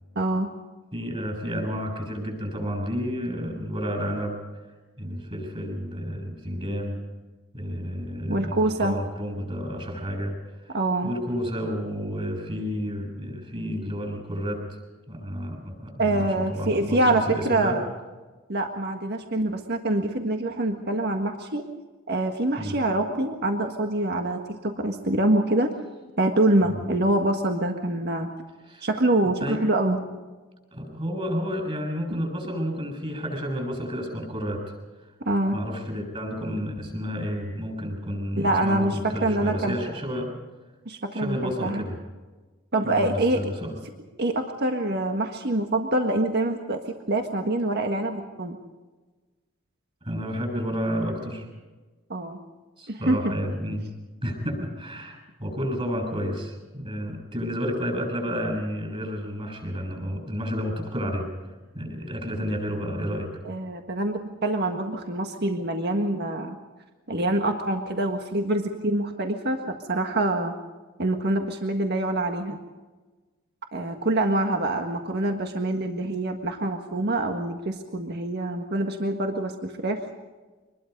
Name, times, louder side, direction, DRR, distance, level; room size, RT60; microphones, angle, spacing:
voice 1, 0.1-0.5 8.3-8.9 10.7-11.1 16.0-17.9 18.5-21.6 22.1-25.7 26.2-28.3 28.8-30.0 32.1-32.2 35.2-35.6 38.4-39.8 40.8-41.8 42.7-43.4 44.2-46.8 47.1-48.6 52.1-52.4 52.9-53.2 63.4-66.6 67.1-70.5 71.0-72.6 73.7-80.0, right 1 dB, 55° right, 4 dB, 1.6 m, -25 dB
voice 2, 0.9-4.3 5.0-7.0 7.5-10.3 10.6-14.6 15.1-17.8 22.6-22.7 26.6-26.8 28.7-28.9 29.2-29.6 30.7-34.7 35.5-40.4 41.1-42.0 42.8-43.7 50.0-51.5 52.8-53.9 54.2-61.3 61.7-63.3, equal, 30° right, 4 dB, 7.2 m, -31 dB
24.5 x 21.0 x 5.4 m, 1.3 s
head